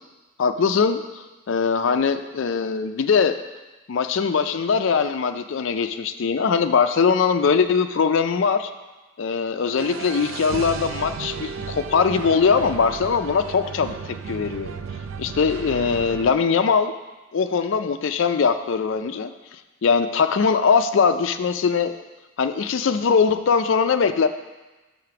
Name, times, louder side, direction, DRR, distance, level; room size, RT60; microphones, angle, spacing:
voice 1, 0.4-3.4 3.9-8.7 9.2-14.8 15.2-16.9 17.3-19.3 19.8-21.9 22.4-24.3, left 5 dB, 60° left, 8 dB, 0.4 m, -21 dB
sound 1, 9.8-16.3, right 5 dB, 65° right, 0.4 m, -34 dB
6.5 x 5.1 x 5.8 m, 1.2 s
head